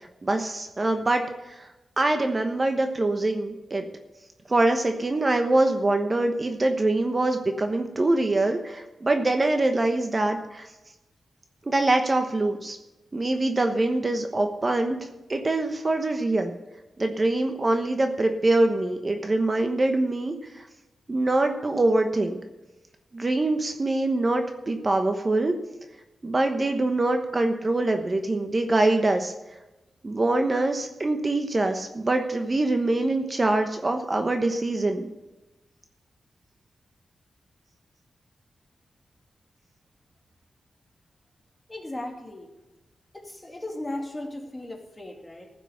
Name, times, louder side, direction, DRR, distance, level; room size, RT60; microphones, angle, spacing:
voice 1, 0.2-1.2 1.5-1.7 2.0-3.8 4.5-10.7 11.7-12.8 13.1-16.5 17.0-20.6 21.1-22.4 23.1-25.5 26.2-29.3 30.0-35.1, right 2 dB, 30° right, 5 dB, 1.1 m, -24 dB
voice 2, 41.7-42.5 43.1-45.5, left 1 dB, 20° left, 1 dB, 2.4 m, -36 dB
15.0 x 6.0 x 6.8 m, 1.0 s
wide cardioid pair, 85°, 0 cm